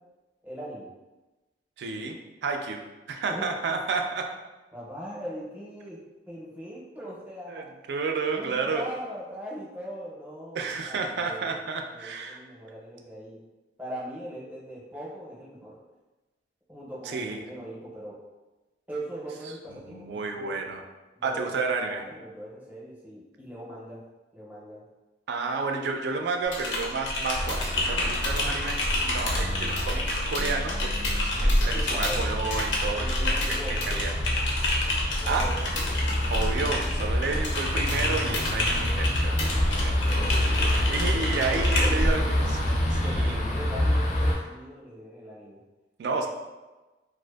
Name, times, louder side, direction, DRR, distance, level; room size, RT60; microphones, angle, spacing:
voice 1, 0.4-0.9 3.3-3.5 4.7-7.7 8.3-11.6 11.9-13.4 13.8-15.8 16.7-18.2 18.9-20.7 21.2-21.5 21.8-24.0 24.3-24.8 31.7-32.3 32.9-33.8 35.2-35.6 40.2-40.7 41.1-42.4 42.9-45.6, equal, 10° right, -6 dB, 0.5 m, -40 dB
voice 2, 1.8-2.8 3.1-4.3 7.5-8.9 10.5-12.4 17.0-17.4 19.9-20.8 21.2-22.0 25.3-34.1 35.3-35.5 36.3-39.4 39.6-43.3 46.0-46.3, right 4 dB, 65° right, 4 dB, 0.3 m, -31 dB
Typing, 26.4-42.1, left 1 dB, 90° left, 0.5 m, -28 dB
sound 1, 27.4-44.4, left 1 dB, 40° left, 0.3 m, -28 dB
2.4 x 2.4 x 2.3 m, 1.1 s
head